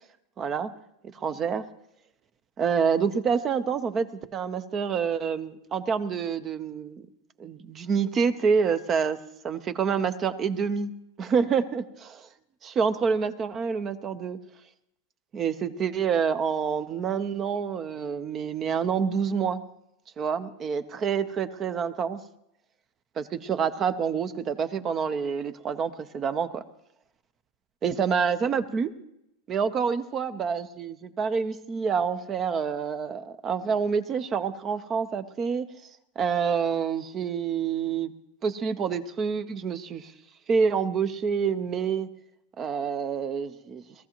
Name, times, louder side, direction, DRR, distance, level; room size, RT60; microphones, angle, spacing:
voice 1, 0.4-0.7 1.1-1.6 2.6-7.1 7.4-9.2 9.4-10.9 11.2-12.3 12.6-14.4 15.3-19.6 20.2-22.2 23.2-26.6 27.8-28.9 29.5-35.7 36.2-38.1 38.4-40.1 40.5-42.1 42.6-43.8, right 6 dB, 25° right, 12 dB, 0.7 m, -27 dB
21.5 x 14.0 x 3.0 m, 0.80 s
supercardioid pair, 145°, 0 cm